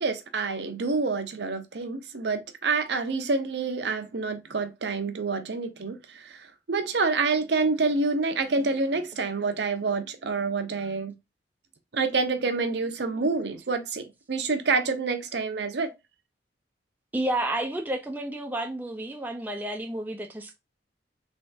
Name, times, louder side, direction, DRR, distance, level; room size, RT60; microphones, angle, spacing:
voice 1, 0.0-11.1 11.9-15.9, right 4 dB, 70° right, 0.7 m, -27 dB
voice 2, 17.1-20.6, right 1 dB, 10° right, 0.4 m, -31 dB
3.4 x 3.1 x 2.5 m
head